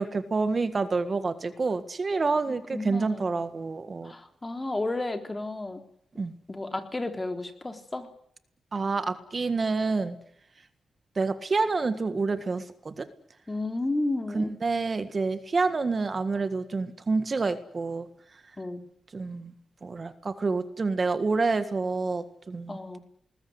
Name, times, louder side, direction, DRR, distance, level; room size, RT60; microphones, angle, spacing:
voice 1, 0.0-4.1 6.2-6.3 8.7-10.2 11.1-13.1 14.3-18.1 19.1-19.5 19.8-22.8, right 4 dB, 40° right, 11 dB, 1.7 m, -28 dB
voice 2, 2.7-3.3 4.0-5.8 6.5-8.1 13.5-14.5 18.6-18.8 22.7-23.0, left 2 dB, 20° left, 6 dB, 3.5 m, -32 dB
20.5 x 20.5 x 9.7 m, 0.68 s
cardioid pair, 100°, 0 cm